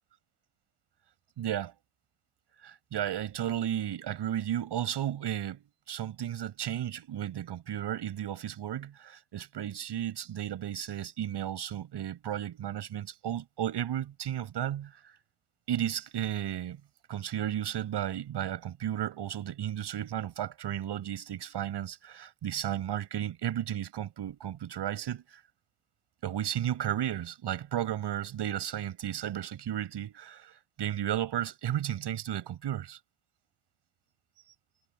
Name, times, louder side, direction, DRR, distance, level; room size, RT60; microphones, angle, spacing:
voice 1, 1.4-1.7 2.6-15.2 15.7-16.8 17.1-25.4 26.2-33.0, right 11 dB, 60° right, 6.4 m, -34 dB
supercardioid pair, 75°, 47 cm